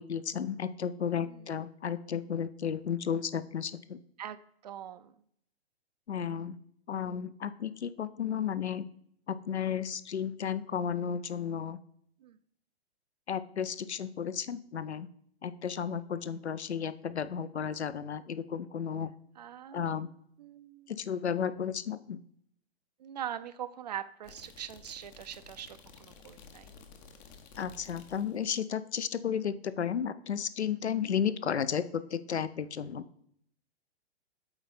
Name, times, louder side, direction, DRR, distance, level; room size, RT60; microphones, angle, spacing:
voice 1, 0.0-4.0 6.1-6.6 6.9-8.9 9.3-11.8 13.3-15.1 15.4-19.1 19.7-20.1 20.9-22.2 27.6-33.0, left 8 dB, 80° left, 14 dB, 0.6 m, -33 dB
voice 2, 4.6-5.1 12.2-12.4 19.4-20.1 20.4-20.9 23.0-26.8 31.0-31.2, right 10 dB, 40° right, 13 dB, 0.4 m, -42 dB
sound 1, 24.2-28.5, left 5 dB, 20° left, 0.5 m, -53 dB
7.9 x 4.2 x 4.1 m, 0.65 s
figure-of-eight pair, 120°, 33 cm